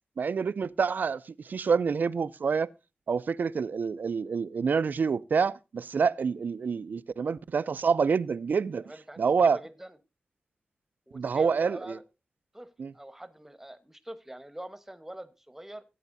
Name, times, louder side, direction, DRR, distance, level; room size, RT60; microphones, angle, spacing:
voice 1, 0.2-2.7 3.1-8.8 9.2-9.6 11.1-12.0 12.8-12.9, right 5 dB, 65° right, 0.5 m, -27 dB
voice 2, 8.8-10.0 11.1-12.0 12.5-12.7 12.9-15.8, right 1 dB, 10° right, 1.1 m, -44 dB
16.0 x 9.2 x 2.6 m
wide cardioid pair, 120°, 3 cm